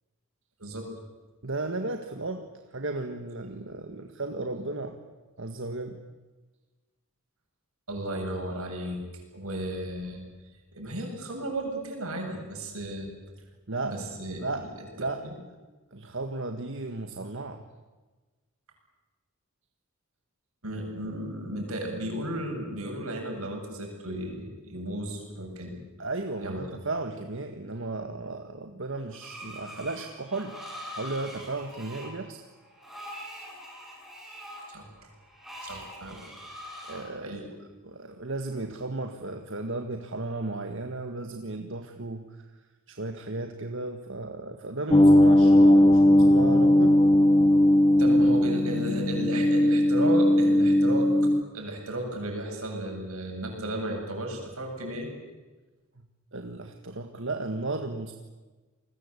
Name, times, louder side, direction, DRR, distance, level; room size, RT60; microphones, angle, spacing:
voice 1, 1.4-5.0 5.4-6.0 13.7-14.0 14.4-14.7 15.0-15.3 15.9-17.6 26.0-30.6 30.9-32.4 36.9-37.4 37.8-42.5 42.9-47.0 56.3-58.1, right 2 dB, 60° right, 5 dB, 1.7 m, -34 dB
voice 2, 7.9-9.0 9.3-10.2 10.7-13.1 13.8-14.4 20.6-25.8 26.4-26.6 34.7-34.9 35.6-36.2 37.2-37.5 48.0-55.1, right 1 dB, 80° right, 2 dB, 7.7 m, -34 dB
Screech, 29.1-37.1, equal, ahead, 7.5 m, -43 dB
sound 1, 44.9-51.4, left 1 dB, 25° left, 1.0 m, -19 dB
29.5 x 20.5 x 8.3 m, 1.2 s
head